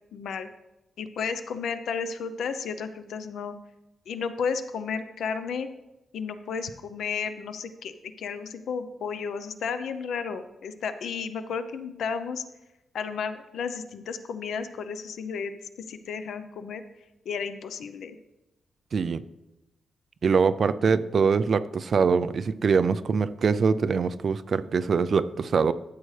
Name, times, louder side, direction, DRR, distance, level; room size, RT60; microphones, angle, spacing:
voice 1, 0.1-0.5 1.0-3.6 4.1-5.7 6.1-12.4 12.9-15.6 15.9-16.8 17.3-18.2, left 6 dB, 85° left, 10 dB, 0.6 m, -33 dB
voice 2, 18.9-19.2 20.2-25.7, right 5 dB, 45° right, 14 dB, 0.3 m, -23 dB
12.5 x 7.8 x 3.3 m, 0.97 s
wide cardioid pair, 170°, 0 cm